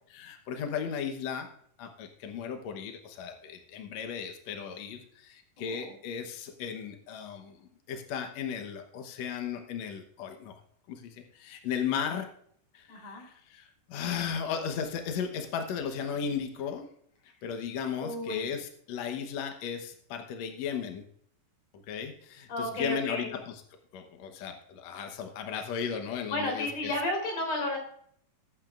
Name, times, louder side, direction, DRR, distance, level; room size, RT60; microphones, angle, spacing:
voice 1, 0.1-1.5 1.8-10.5 10.9-12.3 12.7-16.9 17.4-21.0 21.7-23.6 23.9-26.9, left 7 dB, 75° left, 5 dB, 1.6 m, -36 dB
voice 2, 5.6-5.9 12.9-13.2 17.9-18.5 22.5-23.3 26.3-27.8, left 1 dB, 40° left, 1 dB, 4.5 m, -32 dB
20.0 x 9.0 x 2.5 m, 0.65 s
omnidirectional pair, 4.7 m